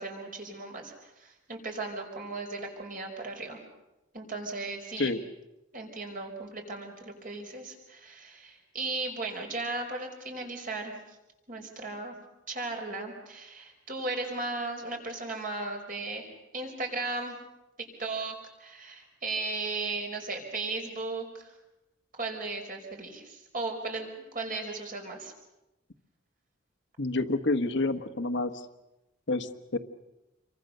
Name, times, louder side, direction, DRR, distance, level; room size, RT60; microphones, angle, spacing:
voice 1, 0.0-3.6 4.1-5.1 5.7-11.0 11.5-12.2 12.5-17.4 17.8-21.5 22.2-24.1 24.3-25.3, right 3 dB, 45° right, 2 dB, 5.4 m, -36 dB
voice 2, 27.0-28.6 29.3-29.8, left 2 dB, 65° left, 9 dB, 1.4 m, -28 dB
28.5 x 24.0 x 6.7 m, 0.97 s
head